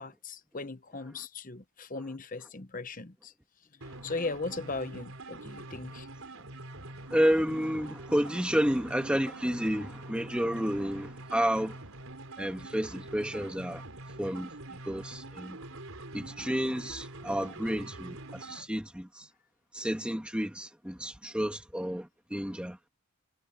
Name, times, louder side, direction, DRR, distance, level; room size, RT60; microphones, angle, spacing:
voice 1, 0.0-3.3 4.0-6.1, left 3 dB, 40° left, 1.0 m, -38 dB
sound 1, 3.8-18.7, right 2 dB, 70° right, 4.7 m, -45 dB
voice 2, 7.1-11.8 12.4-13.8 14.2-15.6 16.1-19.3 19.7-22.8, equal, 5° right, 1.6 m, -31 dB
head